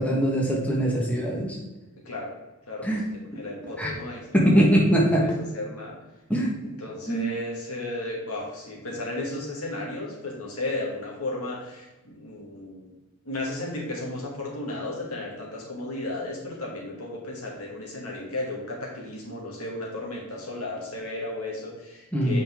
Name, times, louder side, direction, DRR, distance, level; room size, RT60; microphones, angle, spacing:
voice 1, 0.0-1.6 2.8-3.0 3.8-3.9 4.3-5.2 6.3-6.5 7.1-7.2 22.1-22.4, equal, 5° left, -3 dB, 1.5 m, -22 dB
voice 2, 2.7-3.0 3.3-6.0 6.8-12.9 13.3-22.4, left 2 dB, 75° left, -2 dB, 2.4 m, -34 dB
8.5 x 5.2 x 3.7 m, 1.1 s
head